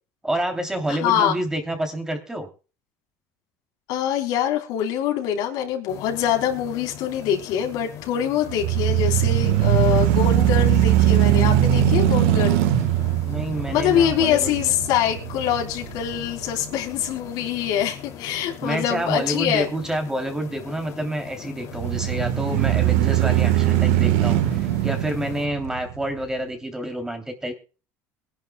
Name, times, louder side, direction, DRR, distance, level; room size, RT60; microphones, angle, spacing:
voice 1, 0.2-2.5 13.2-14.7 18.6-27.5, right 1 dB, 10° right, 5 dB, 3.0 m, -28 dB
voice 2, 0.9-1.4 3.9-12.6 13.7-19.7, left 10 dB, 70° left, 2 dB, 3.9 m, -24 dB
sound 1, 5.9-25.5, left 10 dB, 55° left, 2.7 m, -41 dB
sound 2, 8.5-16.6 17.1-17.2 21.7-26.2, right 13 dB, 85° right, 1.4 m, -20 dB
22.5 x 11.0 x 2.3 m, 0.34 s
cardioid pair, 120°, 7 cm